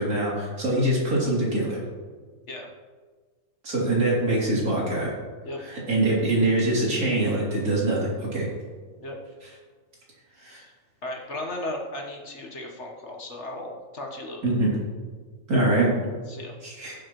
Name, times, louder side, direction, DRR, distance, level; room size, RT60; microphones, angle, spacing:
voice 1, 0.0-1.8 3.6-5.1 5.6-8.5 9.4-9.5 10.4-10.6 14.4-14.7 15.5-15.9 16.6-17.0, right 1 dB, 80° right, -5 dB, 3.7 m, -24 dB
voice 2, 11.0-14.6 16.3-16.5, left 1 dB, 50° left, 1 dB, 1.6 m, -36 dB
16.0 x 7.3 x 3.1 m, 1.5 s
omnidirectional pair, 1.6 m